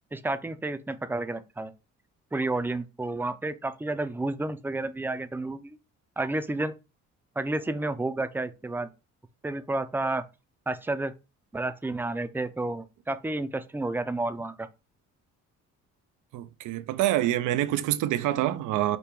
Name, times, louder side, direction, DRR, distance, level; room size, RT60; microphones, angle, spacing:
voice 1, 0.1-1.7 2.3-5.8 6.2-6.7 7.4-8.9 9.4-10.2 10.7-11.1 11.5-14.7, right 2 dB, 5° right, 0.5 m, -31 dB
voice 2, 16.3-19.0, right 13 dB, 90° right, 0.5 m, -26 dB
5.3 x 2.2 x 4.5 m
cardioid pair, 90°, 30 cm